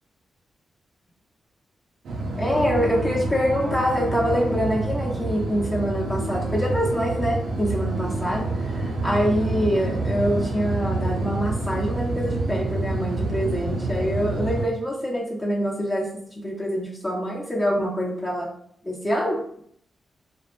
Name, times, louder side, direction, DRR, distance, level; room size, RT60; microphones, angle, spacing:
sound 1, 2.0-14.7, right 2 dB, 85° right, 0.5 m, -27 dB
voice 1, 2.4-18.5 18.8-19.4, equal, 30° left, -4 dB, 0.8 m, -25 dB
2.2 x 2.0 x 3.1 m, 0.65 s
supercardioid pair, 45°, 0 cm